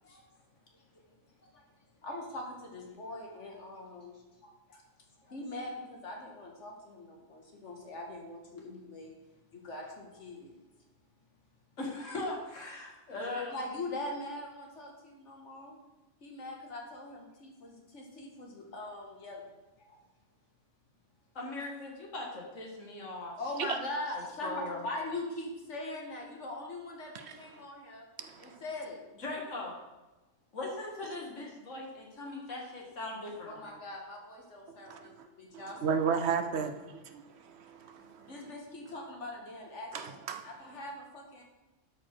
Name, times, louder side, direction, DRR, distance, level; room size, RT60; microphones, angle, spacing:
voice 1, 2.0-4.8 5.2-9.2 9.5-10.6 13.1-13.2 13.5-15.8 16.2-19.5 19.8-20.0 23.4-28.1 28.4-29.0 33.5-36.1 36.4-36.7 38.0-41.4, left 2 dB, 75° left, 0 dB, 1.9 m, -42 dB
voice 2, 11.8-13.6 21.3-23.4 24.1-24.9 29.2-29.8 30.5-33.8, left 2 dB, 90° left, -1 dB, 2.1 m, -39 dB
voice 3, 28.2-28.6 34.9-35.3 35.5-38.3 39.9-40.5, right 6 dB, 65° right, 8 dB, 0.9 m, -34 dB
12.0 x 4.8 x 4.5 m, 1.1 s
omnidirectional pair, 1.3 m